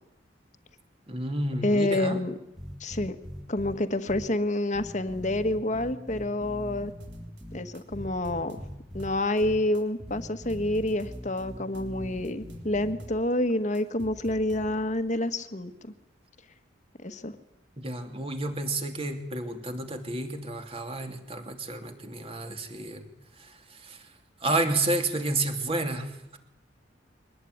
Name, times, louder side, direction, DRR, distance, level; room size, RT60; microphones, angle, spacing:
voice 1, 1.1-2.2 17.8-23.1 23.4-24.1 24.4-26.4, right 2 dB, 30° right, 6 dB, 3.0 m, -31 dB
voice 2, 1.6-2.4 2.8-3.2 3.5-6.9 7.5-8.6 8.9-15.9 17.0-17.3, left 1 dB, 40° left, 10 dB, 1.5 m, -28 dB
sound 1, 2.6-3.8 4.1-4.3 4.7-7.6 7.9-9.1 9.4-9.6 10.1-12.9, equal, 5° right, 2.5 m, -41 dB
sound 2, 7.0-7.4 7.7-9.4 9.7-11.4 11.7-13.2 13.5-15.0, right 1 dB, 70° right, 3.8 m, -47 dB
23.0 x 19.5 x 9.6 m, 0.86 s
head